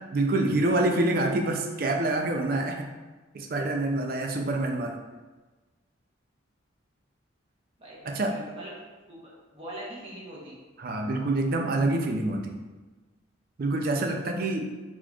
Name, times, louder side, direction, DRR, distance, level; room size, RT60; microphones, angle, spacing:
voice 1, 0.0-2.9 3.3-5.0 8.1-8.4 10.8-12.6 13.6-14.6, right 2 dB, 50° right, 3 dB, 0.4 m, -26 dB
voice 2, 7.8-8.7 9.1-10.6, equal, 30° right, -5 dB, 0.9 m, -42 dB
4.0 x 3.0 x 2.3 m, 1.3 s
head